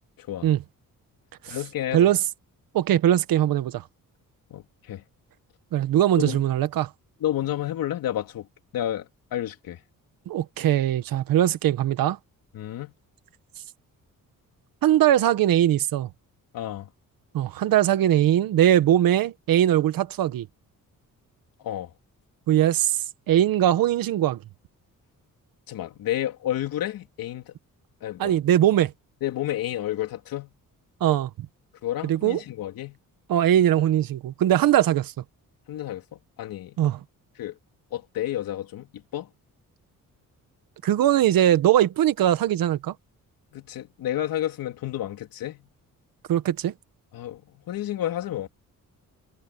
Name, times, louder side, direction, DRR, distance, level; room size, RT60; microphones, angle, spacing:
voice 1, 0.2-0.5 1.5-2.1 4.5-5.0 6.2-6.4 7.2-8.5 8.7-9.8 12.5-12.9 16.5-16.9 21.6-21.9 25.7-27.5 28.0-28.4 29.2-30.5 31.8-33.0 35.7-36.8 37.4-37.6 37.9-39.3 43.5-45.7 47.1-48.5, left 12 dB, 90° left, 3.6 m, -31 dB
voice 2, 2.7-3.8 5.7-6.9 10.3-12.2 14.8-16.1 17.3-20.5 22.5-24.4 28.2-28.9 31.0-31.5 32.0-32.4 33.3-35.1 36.8-37.0 40.8-42.9 46.3-46.7, right 11 dB, 85° right, 1.5 m, -21 dB
cardioid pair, 140°, 33 cm